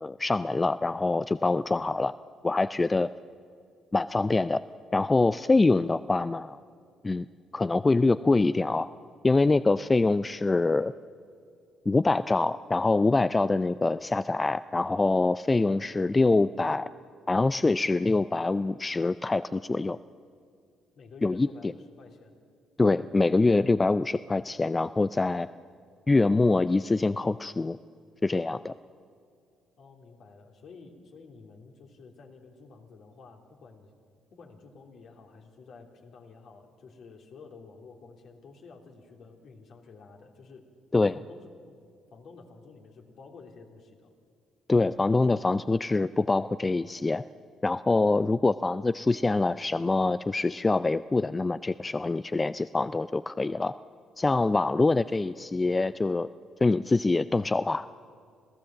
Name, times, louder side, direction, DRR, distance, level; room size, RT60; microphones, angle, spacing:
voice 1, 0.0-2.1 2.4-3.1 3.9-4.6 4.9-6.6 7.0-7.2 7.5-8.9 9.2-10.9 11.9-16.9 17.3-20.0 21.2-21.5 22.8-25.5 26.1-27.8 28.2-28.7 40.9-41.2 44.7-47.2 47.6-53.7 54.2-56.3 56.6-57.9, left 3 dB, 25° left, 14 dB, 0.4 m, -24 dB
voice 2, 20.9-22.3 29.8-33.9 34.3-40.7 41.1-41.5 42.1-44.1 48.2-48.4 54.7-55.1 55.5-55.8, left 4 dB, 65° left, 2 dB, 3.3 m, -51 dB
27.0 x 16.0 x 7.6 m, 2.3 s
supercardioid pair, 65°, 0 cm